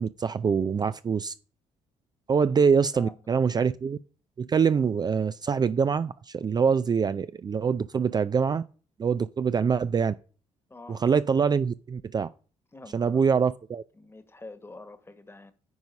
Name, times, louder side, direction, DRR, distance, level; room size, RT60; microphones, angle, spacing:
voice 1, 0.0-1.3 2.3-4.0 4.4-8.6 9.0-10.1 10.9-12.3 12.9-13.8, right 6 dB, 35° right, 0.4 m, -24 dB
voice 2, 10.7-11.0 12.7-13.4 13.9-15.5, left 2 dB, 20° left, 1.4 m, -46 dB
9.5 x 3.9 x 5.3 m
supercardioid pair, 75°, 13 cm